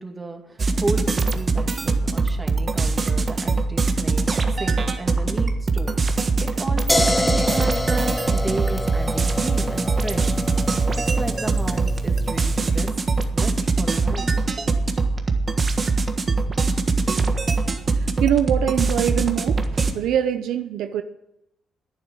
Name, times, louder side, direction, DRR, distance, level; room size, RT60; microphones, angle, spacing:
voice 1, 0.0-10.4 11.1-12.9 13.3-14.3, right 2 dB, 20° right, 3 dB, 2.5 m, -33 dB
sound 1, 0.6-19.9, right 4 dB, 35° right, 1.5 m, -22 dB
sound 2, 6.9-12.7, left 1 dB, 10° left, 1.0 m, -27 dB
voice 2, 17.9-21.0, right 10 dB, 85° right, 8 dB, 0.7 m, -24 dB
11.0 x 9.4 x 8.7 m, 0.87 s
cardioid pair, 90°, 0 cm